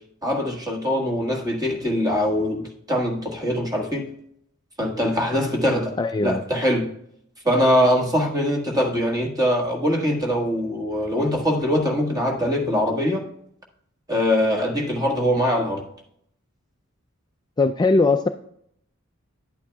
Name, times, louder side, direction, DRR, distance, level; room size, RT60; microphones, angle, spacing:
voice 1, 0.2-4.1 4.8-6.0 6.2-6.9 7.4-13.3 14.1-15.8, equal, 20° right, 1.6 m, -22 dB
voice 2, 6.0-6.4 17.6-18.3, left 3 dB, 20° left, 0.3 m, -19 dB
10.5 x 8.5 x 2.3 m
head